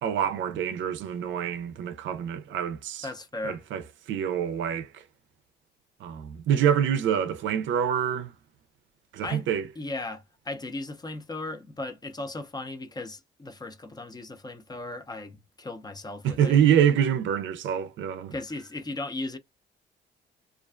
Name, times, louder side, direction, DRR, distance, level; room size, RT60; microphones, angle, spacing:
voice 1, 0.0-3.1 3.4-3.8 4.1-5.0 6.0-8.3 9.1-9.6 16.2-18.3, right 9 dB, 70° right, 0.4 m, -26 dB
voice 2, 3.0-3.6 9.2-9.5 9.8-16.6 18.3-19.4, left 2 dB, 20° left, 0.5 m, -36 dB
2.4 x 2.2 x 2.4 m
cardioid pair, 90°, 20 cm